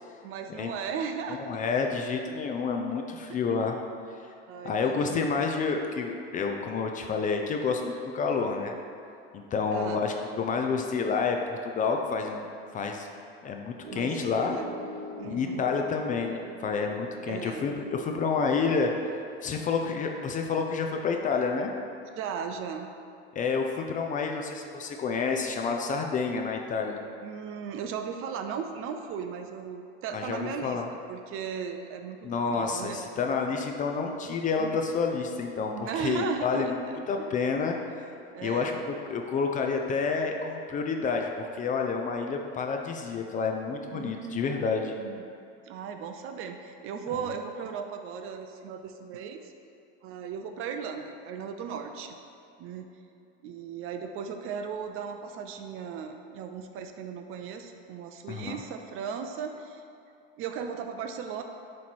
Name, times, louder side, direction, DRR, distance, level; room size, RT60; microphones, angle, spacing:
voice 1, 0.2-1.6 3.2-3.4 4.5-5.4 9.7-10.0 13.9-14.7 15.2-15.7 17.3-17.8 22.2-22.9 27.2-30.8 31.1-33.0 34.6-34.8 35.7-37.3 38.3-38.8 43.9-45.2 45.7-49.4 50.0-52.2 52.6-52.8 53.4-59.8 60.4-61.4, right 6 dB, 45° right, 6 dB, 0.5 m, -37 dB
voice 2, 1.3-3.8 4.6-8.8 9.3-12.5 12.7-13.1 13.4-14.6 15.2-18.9 19.4-21.7 23.3-27.0 30.1-30.9 32.2-36.8 37.1-37.8 38.4-44.9 58.3-58.6, left 5 dB, 25° left, 3 dB, 0.4 m, -29 dB
Piano, 13.8-18.8, equal, 65° right, 1.4 m, -43 dB
7.0 x 3.2 x 4.4 m, 2.5 s
supercardioid pair, 115°, 30 cm